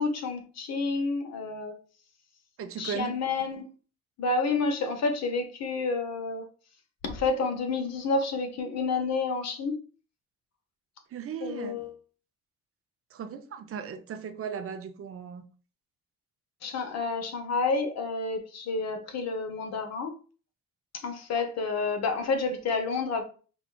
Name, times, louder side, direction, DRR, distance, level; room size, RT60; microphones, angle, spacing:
voice 1, 0.0-1.8 2.8-3.7 4.2-6.5 7.0-9.8 11.4-11.9 16.6-20.1 20.9-23.2, left 4 dB, 60° left, 0.8 m, -29 dB
voice 2, 2.6-3.2 11.1-11.8 13.1-15.4, right 7 dB, 50° right, 0.5 m, -37 dB
4.9 x 2.3 x 2.2 m
cardioid pair, 90°, 30 cm